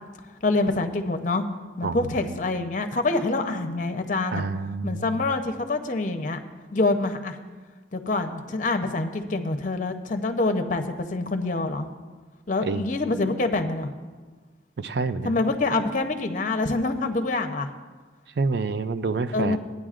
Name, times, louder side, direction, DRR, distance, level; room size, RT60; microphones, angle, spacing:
voice 1, 0.4-1.4 1.8-4.5 4.8-6.4 6.7-7.4 7.9-10.8 11.1-11.9 12.5-13.9 15.2-17.7 19.3-19.6, left 2 dB, 45° left, 7 dB, 0.7 m, -26 dB
voice 2, 1.8-2.1 4.3-5.2 12.6-12.9 14.8-15.3 18.4-19.6, right 4 dB, 60° right, 12 dB, 0.4 m, -28 dB
17.0 x 9.5 x 2.5 m, 1.4 s
head